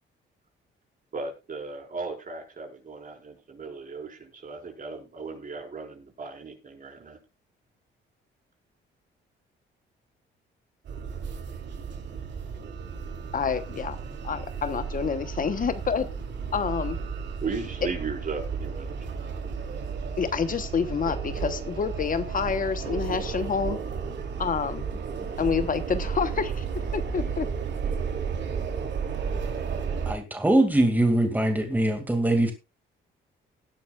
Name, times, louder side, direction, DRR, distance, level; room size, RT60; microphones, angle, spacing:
voice 1, 1.1-7.2 17.4-19.0 25.2-25.3 27.2-27.3 27.9-28.0, right 4 dB, 45° right, 2 dB, 4.9 m, -36 dB
sound 1, 10.8-30.1, right 6 dB, 65° right, 3.2 m, -33 dB
voice 2, 13.3-14.0 14.2-16.1 16.5-17.0 20.2-23.8 24.4-24.9 25.4-26.6 26.9-27.5, left 6 dB, 45° left, 11 dB, 1.1 m, -28 dB
voice 3, 30.1-32.5, right 1 dB, 10° right, 5 dB, 2.3 m, -22 dB
18.5 x 11.0 x 2.4 m, 0.27 s
cardioid pair, 90°, 20 cm